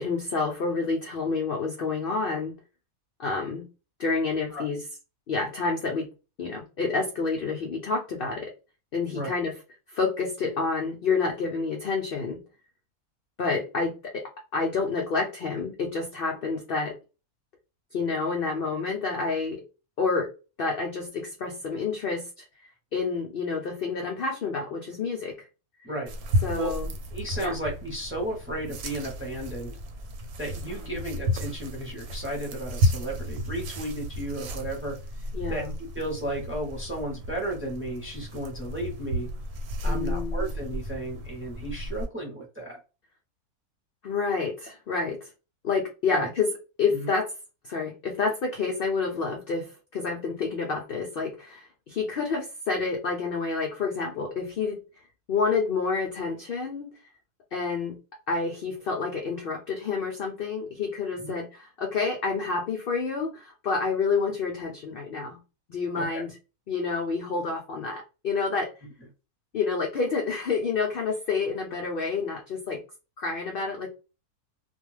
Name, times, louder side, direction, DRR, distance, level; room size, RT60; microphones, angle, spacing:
voice 1, 0.0-2.5 3.2-3.7 4.0-4.8 5.3-6.1 6.4-8.5 8.9-9.5 9.9-12.4 13.4-16.9 17.9-19.6 20.0-20.3 20.6-22.5 22.9-25.5 26.4-26.9 27.4-27.5 30.5-31.1 35.3-35.7 39.9-40.5 44.0-45.3 45.6-46.5 46.8-47.3 47.6-54.8 55.3-56.9 57.5-58.0 58.3-65.4 65.7-66.4 66.7-68.7 69.5-72.8 73.2-73.9, left 4 dB, 80° left, 1 dB, 0.5 m, -29 dB
sound 1, 26.1-42.1, equal, 80° right, 1.1 m, -32 dB
voice 2, 27.1-29.8 30.4-35.0 35.5-35.6 35.9-39.3 39.8-42.8 46.1-46.3 46.9-47.1 61.2-61.3 65.9-66.2, right 1 dB, 15° right, 0 dB, 0.5 m, -34 dB
2.4 x 2.3 x 3.1 m, 0.31 s
omnidirectional pair, 1.6 m